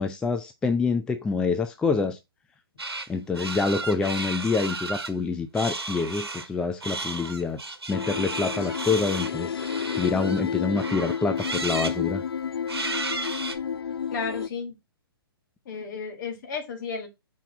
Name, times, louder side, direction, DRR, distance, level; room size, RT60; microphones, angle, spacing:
voice 1, 0.0-2.2 3.1-7.6 7.9-9.6 9.9-12.2, left 4 dB, 5° left, 0.4 m, -26 dB
sound 1, 2.8-3.1 3.3-5.1 5.5-6.5 6.8-10.4 10.8-12.0 12.7-13.6, right 3 dB, 80° right, 1.3 m, -33 dB
sound 2, 7.9-14.5, left 7 dB, 75° left, 0.5 m, -31 dB
voice 2, 14.1-14.7 15.7-17.1, left 5 dB, 50° left, 2.1 m, -33 dB
5.8 x 4.4 x 4.1 m
figure-of-eight pair, 130°, 13 cm